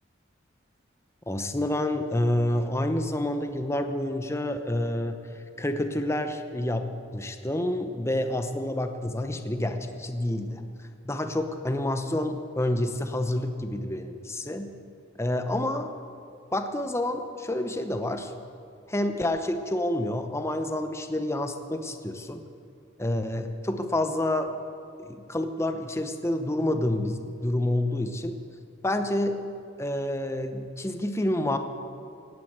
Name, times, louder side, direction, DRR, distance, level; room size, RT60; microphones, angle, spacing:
voice 1, 1.3-5.2 5.6-10.6 11.0-14.8 15.2-15.9 16.5-18.3 18.9-22.4 23.0-24.5 25.0-28.4 28.8-29.5 29.8-31.6, left 1 dB, 15° left, 7 dB, 0.8 m, -28 dB
18.0 x 9.4 x 8.0 m, 2.4 s
head